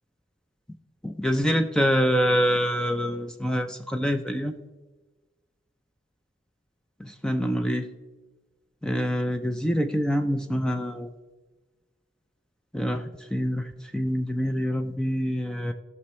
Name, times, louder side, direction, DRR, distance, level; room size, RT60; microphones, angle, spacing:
voice 1, 1.0-4.6 7.0-7.9 8.8-11.1 12.7-15.7, equal, 5° left, 6 dB, 0.4 m, -26 dB
15.5 x 6.1 x 3.1 m, 1.3 s
head